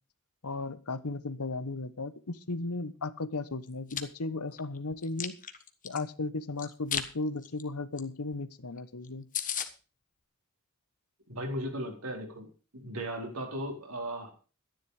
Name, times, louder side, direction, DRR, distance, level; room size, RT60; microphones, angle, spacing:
voice 1, 0.4-5.4 5.8-9.3, left 3 dB, 85° left, 14 dB, 1.1 m, -35 dB
Chewing mastication, 3.7-4.0 4.5-6.0 6.6-7.1 7.4-7.6 8.0-8.1 8.3-8.4 8.8-8.9 9.0-9.1 9.3-9.7, left 9 dB, 35° left, 1.4 m, -34 dB
voice 2, 11.3-12.5 12.7-14.3, right 1 dB, 75° right, 3 dB, 4.4 m, -36 dB
13.0 x 10.5 x 4.9 m, 0.35 s
head